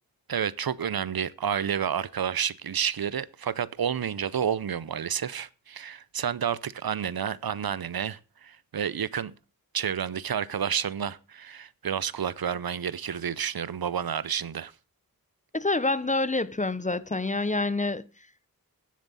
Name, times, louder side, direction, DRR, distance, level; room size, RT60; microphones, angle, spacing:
voice 1, 0.3-9.3 9.7-14.7, right 8 dB, 80° right, 0.7 m, -30 dB
voice 2, 15.5-18.0, left 2 dB, 20° left, 0.7 m, -27 dB
17.0 x 7.3 x 4.1 m
wide cardioid pair, 70°, 36 cm